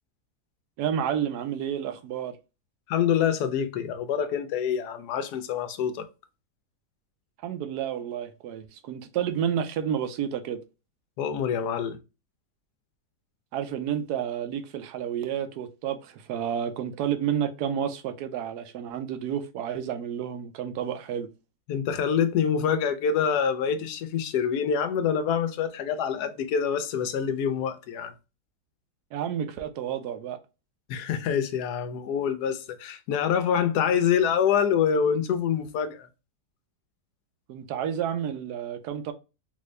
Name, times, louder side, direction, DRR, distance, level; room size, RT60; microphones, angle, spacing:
voice 1, 0.8-2.4 7.4-10.6 13.5-21.3 29.1-30.4 37.5-39.1, right 9 dB, 75° right, 1.1 m, -30 dB
voice 2, 2.9-6.1 11.2-12.0 21.7-28.1 30.9-36.1, left 7 dB, 75° left, 1.1 m, -26 dB
3.7 x 2.6 x 3.1 m
omnidirectional pair, 1.8 m